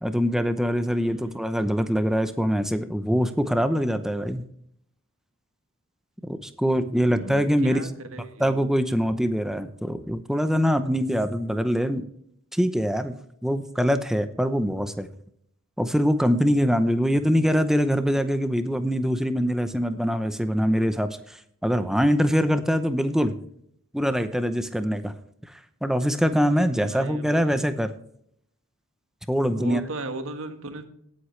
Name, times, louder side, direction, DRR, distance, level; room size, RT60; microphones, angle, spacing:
voice 1, 0.0-4.4 6.3-7.9 8.4-12.0 12.5-13.1 13.4-15.1 15.8-21.4 21.6-23.3 23.9-25.1 25.8-27.9 29.3-29.8, equal, ahead, 10 dB, 0.8 m, -23 dB
voice 2, 0.8-1.5 6.9-8.5 17.2-17.5 26.7-27.6 29.5-30.8, right 2 dB, 65° right, 7 dB, 1.5 m, -37 dB
18.5 x 8.0 x 3.3 m, 0.69 s
head